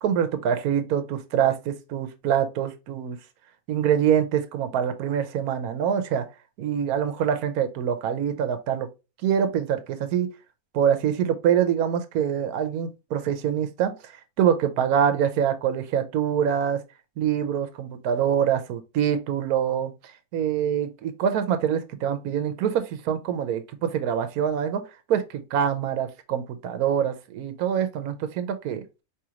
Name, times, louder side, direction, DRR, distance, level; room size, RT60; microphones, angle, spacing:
voice 1, 0.0-3.2 3.7-6.3 6.6-8.9 9.2-10.3 10.7-14.1 14.4-16.8 17.2-19.9 20.3-24.8 25.1-28.8, right 8 dB, 85° right, 1.1 m, -25 dB
4.8 x 3.0 x 2.9 m
omnidirectional pair, 1.5 m